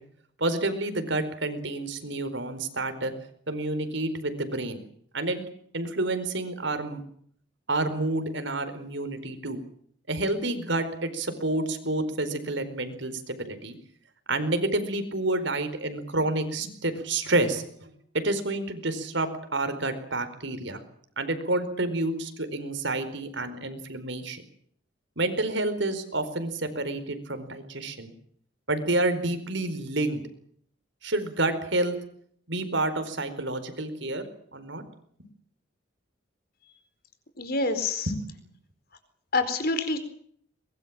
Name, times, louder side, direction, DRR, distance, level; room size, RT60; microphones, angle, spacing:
voice 1, 0.4-3.1 3.5-4.8 5.1-5.4 5.7-7.0 7.7-9.6 10.1-13.8 14.3-20.8 21.2-24.4 25.2-28.1 28.7-30.2 31.0-31.9 32.5-34.3 34.5-34.8 35.2-35.3 38.1-38.2, right 2 dB, 65° right, 9 dB, 4.6 m, -29 dB
voice 2, 37.4-38.1 39.3-40.1, left 3 dB, 50° left, 10 dB, 4.4 m, -26 dB
23.5 x 21.5 x 7.5 m, 0.63 s
head